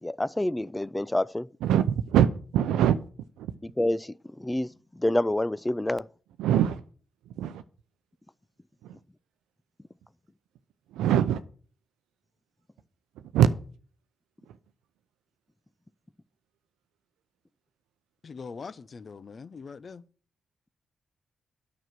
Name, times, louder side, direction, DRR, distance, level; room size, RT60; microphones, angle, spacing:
voice 1, 0.0-1.5 3.8-6.1, left 1 dB, 15° left, 0.4 m, -28 dB
voice 2, 1.6-3.0 3.4-3.5 6.4-6.8 7.3-7.6 8.8-9.0 10.9-11.4 13.2-13.5 14.5-14.6, right 10 dB, 85° right, 0.5 m, -23 dB
voice 3, 18.2-20.0, left 5 dB, 50° left, 0.6 m, -42 dB
9.1 x 6.2 x 7.5 m
hypercardioid pair, 45°, 0 cm